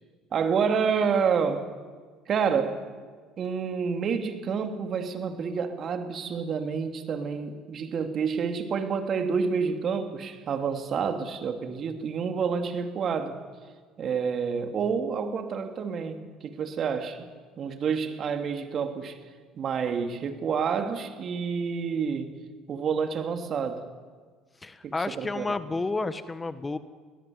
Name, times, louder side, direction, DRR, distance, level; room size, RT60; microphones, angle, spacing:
voice 1, 0.3-1.7 2.3-2.8 3.4-13.4 14.0-17.3 17.6-19.2 19.5-22.3 22.7-23.9 24.8-25.5, right 6 dB, 50° right, 7 dB, 2.7 m, -28 dB
voice 2, 24.6-26.8, left 3 dB, 20° left, 13 dB, 1.4 m, -31 dB
22.5 x 19.0 x 9.6 m, 1.5 s
hypercardioid pair, 70°, 0 cm